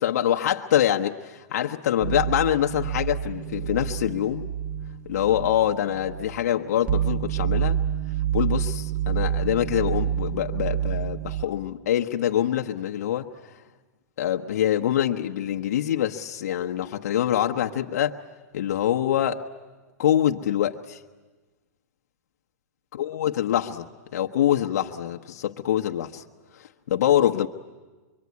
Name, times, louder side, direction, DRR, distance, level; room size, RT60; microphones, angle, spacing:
voice 1, 0.0-4.5 5.0-7.8 8.3-13.3 14.2-18.2 18.5-19.4 20.0-21.0 23.0-23.9 24.1-26.2 26.9-27.5, left 11 dB, 65° left, 1.1 m, -25 dB
sound 1, 2.0-11.4, right 10 dB, 15° right, 1.0 m, -28 dB
25.0 x 23.5 x 9.6 m
hypercardioid pair, 155°, 9 cm